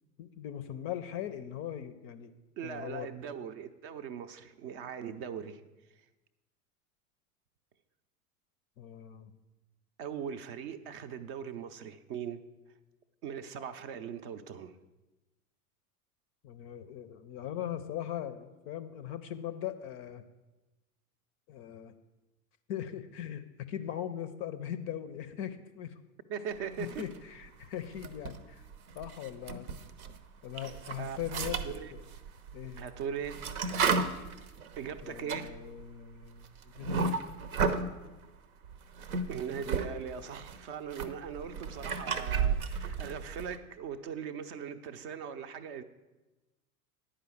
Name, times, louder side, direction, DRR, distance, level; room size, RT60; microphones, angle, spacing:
voice 1, 0.2-2.3 2.6-3.1 8.8-9.3 16.4-20.2 21.5-21.9 22.7-25.9 26.8-28.6 29.0-29.7 30.4-32.0 32.5-32.8 35.0-37.2, left 10 dB, 30° left, 0.5 m, -40 dB
voice 2, 2.6-5.6 10.0-12.4 13.2-14.7 26.3-27.0 31.0-31.2 31.6-31.9 32.8-33.4 34.8-35.6 39.3-45.8, right 7 dB, 40° right, 0.6 m, -40 dB
sound 1, 26.8-27.5 27.9-30.2 30.5-37.9 38.6-39.9 40.2-43.6, right 5 dB, 70° right, 0.8 m, -34 dB
10.0 x 5.0 x 7.5 m
figure-of-eight pair, 80°, 45 cm